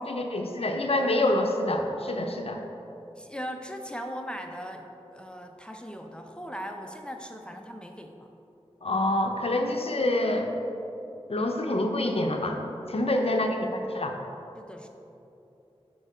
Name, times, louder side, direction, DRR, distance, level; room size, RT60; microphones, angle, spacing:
voice 1, 0.1-2.6 8.8-10.5 11.3-12.6 12.9-14.2, left 1 dB, 65° left, 3 dB, 0.5 m, -26 dB
voice 2, 3.2-4.9 5.1-8.3 13.4-14.1 14.5-14.9, equal, 10° left, 3 dB, 0.5 m, -39 dB
6.5 x 4.6 x 4.9 m, 3.0 s
wide cardioid pair, 65°, 11 cm